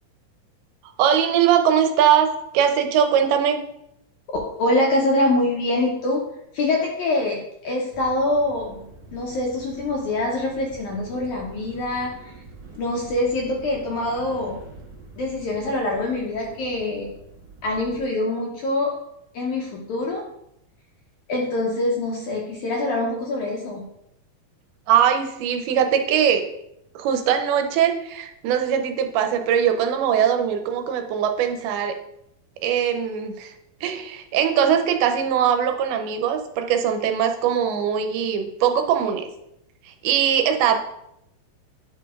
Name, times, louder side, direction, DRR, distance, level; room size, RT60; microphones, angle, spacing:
voice 1, 1.0-3.6 24.9-26.4 27.0-31.9 32.6-33.5 33.8-39.3 39.9-40.8, right 8 dB, 90° right, 6 dB, 2.6 m, -21 dB
voice 2, 4.6-6.2 6.5-8.8 9.1-12.3 12.8-14.6 15.2-17.1 17.6-18.9 19.3-20.2 21.3-23.8, left 2 dB, 75° left, -1 dB, 1.8 m, -24 dB
sound 1, 7.9-18.0, right 3 dB, 60° right, 1.3 m, -45 dB
9.6 x 5.1 x 2.4 m, 0.78 s
omnidirectional pair, 4.3 m